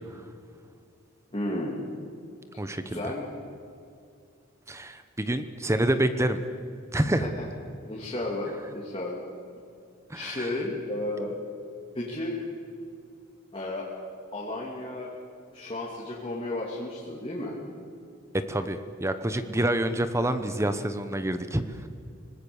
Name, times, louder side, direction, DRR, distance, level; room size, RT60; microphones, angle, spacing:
voice 1, 1.3-1.8 2.8-3.3 7.2-7.3 7.8-9.2 10.1-11.4 11.9-12.3 13.5-13.9 14.3-15.1 15.5-17.6, left 1 dB, 25° left, -5 dB, 3.0 m, -33 dB
voice 2, 2.6-3.0 4.7-6.4 6.9-7.3 10.1-10.5 18.5-21.9, right 1 dB, 15° right, 10 dB, 0.9 m, -27 dB
25.0 x 20.0 x 7.2 m, 2.4 s
head